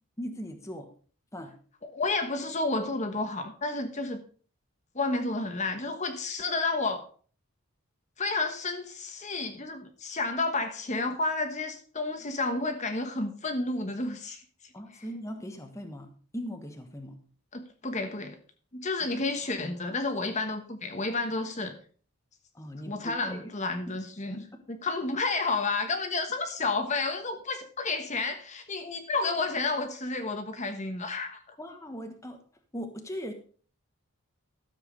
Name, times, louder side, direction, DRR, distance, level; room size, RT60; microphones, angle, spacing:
voice 1, 0.2-0.9 1.3-1.6 14.7-17.2 19.0-19.2 22.5-23.5 23.9-24.0 24.3-24.6 31.6-32.4 32.7-33.3, equal, 15° left, 5 dB, 1.3 m, -39 dB
voice 2, 1.8-4.2 4.9-7.1 8.2-14.4 17.5-18.4 18.7-21.7 22.9-24.4 24.7-31.5, left 3 dB, 30° left, 6 dB, 1.2 m, -31 dB
13.5 x 7.4 x 5.1 m, 0.43 s
head